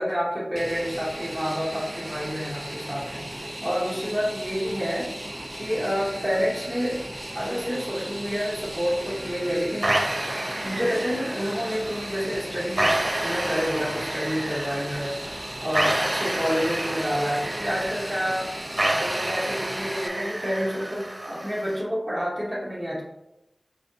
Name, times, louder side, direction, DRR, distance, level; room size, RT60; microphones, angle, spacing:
voice 1, 0.0-5.1 5.6-7.0 7.3-9.9 10.6-15.2 15.6-18.5 19.0-23.0, equal, ahead, -6 dB, 1.0 m, -28 dB
Fixed-wing aircraft airplane, 0.6-20.1, right 1 dB, 15° right, 0.3 m, -36 dB
sound 1, 9.8-21.8, right 1 dB, 35° right, 0.7 m, -29 dB
5.1 x 3.3 x 2.7 m, 0.91 s
wide cardioid pair, 70°, 0 cm